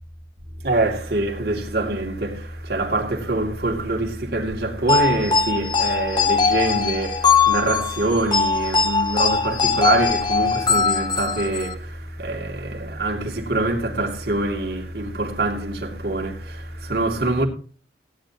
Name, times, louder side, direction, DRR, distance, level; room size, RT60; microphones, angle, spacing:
voice 1, 0.6-17.5, right 2 dB, 60° right, 2.7 m, -25 dB
sound 1, 4.9-11.7, left 5 dB, 25° left, 1.0 m, -21 dB
16.0 x 10.5 x 3.0 m
head